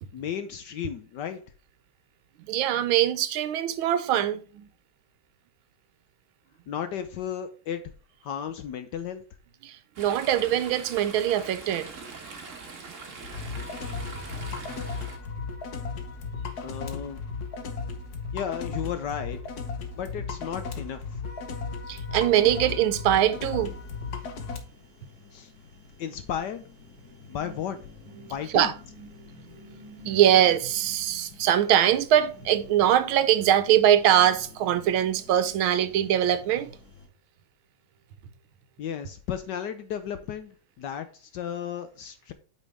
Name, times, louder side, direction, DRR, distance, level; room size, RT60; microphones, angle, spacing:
voice 1, 0.1-1.4 6.7-7.9 8.2-9.2 16.6-17.2 18.3-19.4 19.9-21.0 25.3-25.5 26.0-26.7 27.3-27.8 28.3-28.7 38.8-40.5 40.8-42.3, left 8 dB, 70° left, 1.1 m, -34 dB
voice 2, 2.4-4.7 9.6-11.9 14.1-14.8 21.9-23.8 27.4-27.5 28.2-36.8, right 11 dB, 80° right, 1.5 m, -23 dB
Chatter / Stream, 10.0-15.2, right 4 dB, 45° right, 1.3 m, -42 dB
sound 1, 13.2-24.6, left 4 dB, 55° left, 1.4 m, -35 dB
sound 2, 23.7-37.1, left 5 dB, 35° left, 2.7 m, -51 dB
8.6 x 5.3 x 3.4 m
omnidirectional pair, 2.3 m